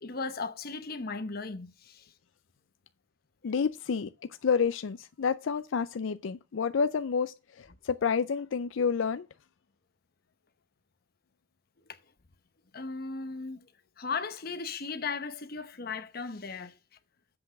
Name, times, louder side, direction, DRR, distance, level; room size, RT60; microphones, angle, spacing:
voice 1, 0.0-2.1 11.9-12.0 12.7-13.7 14.0-16.7, left 4 dB, 50° left, 0.9 m, -36 dB
voice 2, 3.4-9.3, left 6 dB, 80° left, 0.4 m, -29 dB
7.8 x 5.9 x 6.5 m
head